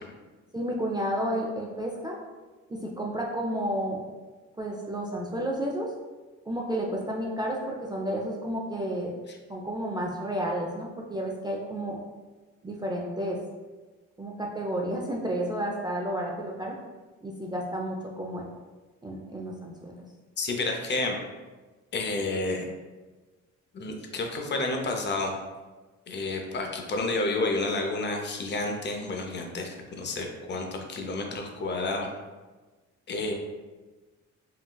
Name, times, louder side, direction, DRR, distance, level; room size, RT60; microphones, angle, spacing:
voice 1, 0.5-2.2 2.7-4.0 4.6-5.9 6.5-9.2 9.5-12.0 12.6-13.4 14.2-16.8 17.2-18.4 19.0-19.9, right 1 dB, 15° right, -2 dB, 0.3 m, -31 dB
voice 2, 20.4-21.2 21.9-22.6 23.7-25.3 26.1-32.1 33.1-33.3, left 2 dB, 35° left, 2 dB, 0.5 m, -30 dB
3.8 x 2.2 x 2.2 m, 1.3 s
cardioid pair, 90°, 30 cm